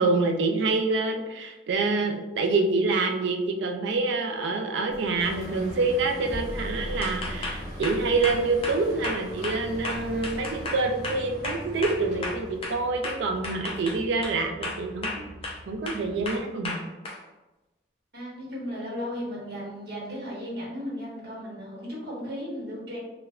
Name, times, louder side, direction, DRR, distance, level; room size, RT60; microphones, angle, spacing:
voice 1, 0.0-15.3 15.7-16.8, right 3 dB, 80° right, 4 dB, 0.4 m, -26 dB
sound 1, 4.9-10.6, equal, 65° left, 1.0 m, -41 dB
sound 2, 5.2-16.4, equal, 35° right, 1.0 m, -41 dB
sound 3, 7.0-12.8 13.0-14.4 14.6-15.6 15.9-17.2, left 2 dB, 30° left, 0.3 m, -34 dB
voice 2, 18.1-23.0, equal, 60° right, -5 dB, 0.9 m, -35 dB
2.7 x 2.1 x 2.3 m, 1.1 s
head